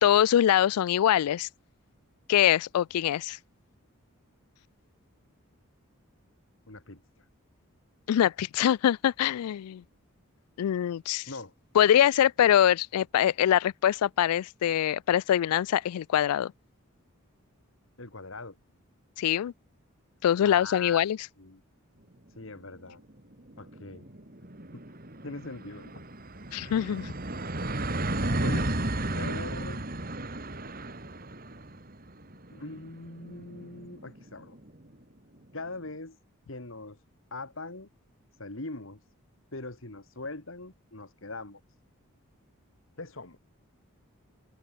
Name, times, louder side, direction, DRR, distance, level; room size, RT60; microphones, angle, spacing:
voice 1, 0.0-1.5 2.3-3.4 8.1-9.8 10.6-11.3 11.7-16.5 19.2-19.5 20.2-21.2 26.5-27.1, left 10 dB, 90° left, 0.3 m, -24 dB
voice 2, 6.7-7.0 11.3-11.5 18.0-18.6 20.4-21.0 21.4-21.6 22.4-23.0 23.6-24.1 24.7-24.8 25.2-25.9 28.2-28.8 29.1-29.8 32.5-34.6 35.5-36.2 36.5-37.0 37.3-37.9 38.4-39.0 39.5-41.6 43.0-43.4, left 2 dB, 65° left, 2.2 m, -41 dB
sound 1, 22.6-22.7 23.0-23.1 23.3-34.8, right 1 dB, 40° right, 2.6 m, -34 dB
head